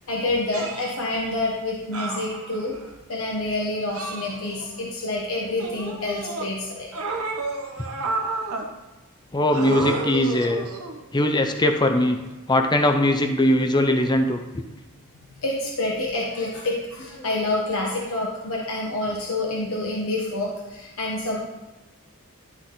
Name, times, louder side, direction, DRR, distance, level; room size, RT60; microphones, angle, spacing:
voice 1, 0.1-2.8 3.1-6.9 15.4-21.4, left 2 dB, 65° left, -3 dB, 1.2 m, -27 dB
sound 1, 0.5-1.0 1.9-2.8 3.9-4.8 5.6-6.5 6.9-8.7 9.5-11.0 12.1-12.3, right 2 dB, 80° right, 1.1 m, -31 dB
voice 2, 9.3-10.7 11.1-12.2 12.5-14.4, left 1 dB, 20° left, 6 dB, 0.5 m, -20 dB
12.0 x 4.1 x 3.9 m, 1.1 s
head